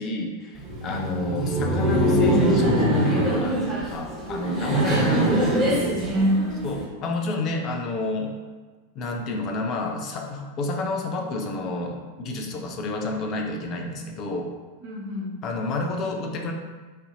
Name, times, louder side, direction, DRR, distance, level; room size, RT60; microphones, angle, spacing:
voice 1, 0.0-5.5 6.6-8.3 8.9-14.5 15.4-16.5, left 2 dB, 35° left, 2 dB, 0.6 m, -29 dB
Laughter, 0.6-6.8, equal, 15° right, 1.3 m, -23 dB
voice 2, 4.4-6.6 14.8-15.4, right 1 dB, 50° right, -4 dB, 1.2 m, -27 dB
4.1 x 2.7 x 3.8 m, 1.3 s
figure-of-eight pair, 90°, 0 cm